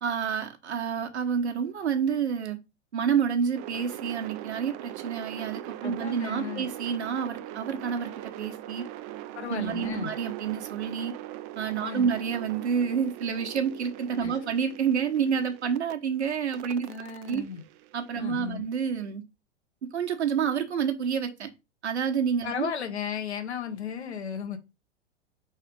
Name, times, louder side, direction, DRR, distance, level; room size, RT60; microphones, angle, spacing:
voice 1, 0.0-2.6 2.9-8.9 9.5-11.1 11.5-17.4 17.9-19.2 19.8-21.5 21.8-22.7, right 7 dB, 75° right, 1.2 m, -29 dB
sound 1, 3.5-15.9 16.5-18.7, right 13 dB, 25° right, 0.4 m, -41 dB
voice 2, 5.8-6.7 9.3-10.1 11.8-12.1 14.2-14.3 16.8-17.6 18.2-18.6 22.4-24.6, left 7 dB, 70° left, 1.5 m, -35 dB
5.0 x 4.2 x 5.3 m
figure-of-eight pair, 100°, 34 cm